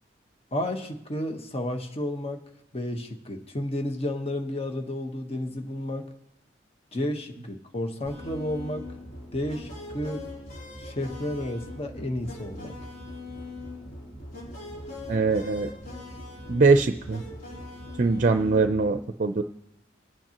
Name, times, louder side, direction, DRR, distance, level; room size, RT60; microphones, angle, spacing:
voice 1, 0.5-2.4 2.7-6.1 6.9-8.9 9.3-10.3 10.8-12.8, left 1 dB, 35° left, 4 dB, 1.2 m, -32 dB
sound 1, 8.1-18.8, left 2 dB, 50° left, 3.8 m, -41 dB
voice 2, 15.1-15.7 16.5-17.2 18.0-19.4, right 4 dB, 45° right, 8 dB, 0.5 m, -22 dB
22.0 x 9.1 x 3.0 m, 0.82 s
head